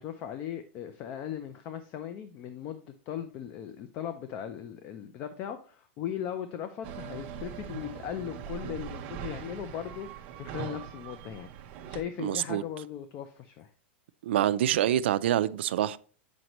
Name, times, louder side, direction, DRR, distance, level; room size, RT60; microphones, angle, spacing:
voice 1, 0.0-10.1 10.4-11.5 11.9-13.7, left 9 dB, 25° left, 0.4 m, -38 dB
sound 1, 6.8-12.0, right 8 dB, 30° right, 0.6 m, -41 dB
voice 2, 12.2-12.6 14.2-16.0, right 11 dB, 65° right, 0.4 m, -26 dB
7.8 x 5.1 x 2.9 m
supercardioid pair, 175°, 6 cm